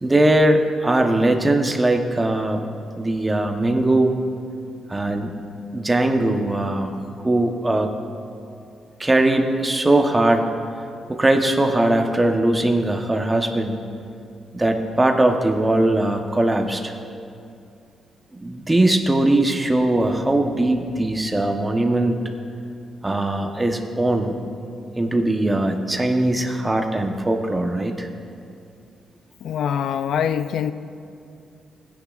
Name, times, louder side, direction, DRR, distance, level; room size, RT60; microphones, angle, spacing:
voice 1, 0.0-2.6 2.9-4.1 4.9-5.4 5.7-6.9 7.2-7.9 9.0-10.4 11.1-13.8 14.5-16.9 18.4-22.2 23.0-24.4 25.0-28.1, right 1 dB, 15° right, 4 dB, 1.0 m, -20 dB
voice 2, 29.4-30.7, left 8 dB, 75° left, 12 dB, 0.4 m, -24 dB
18.5 x 10.0 x 2.4 m, 2.5 s
cardioid pair, 105°, 0 cm